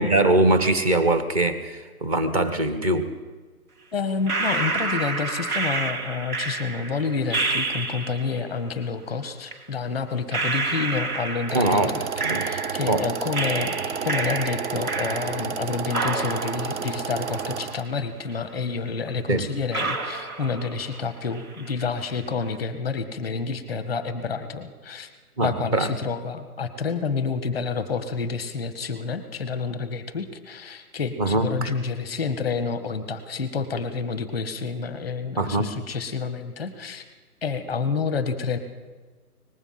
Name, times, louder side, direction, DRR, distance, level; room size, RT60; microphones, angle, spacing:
voice 1, 0.0-3.1 11.5-12.5 12.9-13.0 19.3-19.5 25.4-25.9 31.2-31.7 35.4-35.7, right 2 dB, 25° right, 8 dB, 1.3 m, -22 dB
voice 2, 3.9-12.1 12.4-25.1 25.4-37.0 37.4-38.6, left 5 dB, ahead, 10 dB, 1.0 m, -29 dB
sound 1, 4.3-8.4 9.5-9.6 10.3-13.0 13.3-15.6 15.9-18.0 18.3-18.4 19.1-19.2 19.7-21.0 21.3-21.9, right 3 dB, 75° right, 2.7 m, -29 dB
sound 2, 11.5-17.8, right 7 dB, 50° right, 0.7 m, -31 dB
23.5 x 19.5 x 5.8 m, 1.4 s
hypercardioid pair, 165°, 45 cm